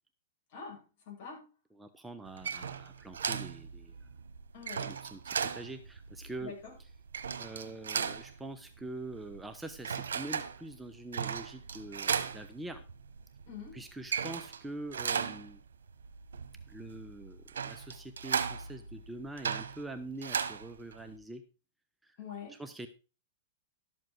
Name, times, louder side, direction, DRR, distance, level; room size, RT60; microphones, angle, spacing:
voice 1, 0.5-1.5 4.5-5.0 6.4-6.7 13.5-13.8 22.2-22.6, left 6 dB, 55° left, 0 dB, 7.9 m, -45 dB
voice 2, 1.8-4.1 4.8-6.5 7.4-12.8 13.7-15.6 16.7-21.4 22.0-22.2 22.5-22.9, right 2 dB, 5° right, 7 dB, 0.9 m, -44 dB
sound 1, 2.3-21.2, right 6 dB, 85° right, 1.2 m, -37 dB
12.5 x 7.5 x 4.6 m, 0.32 s
hypercardioid pair, 130°, 0 cm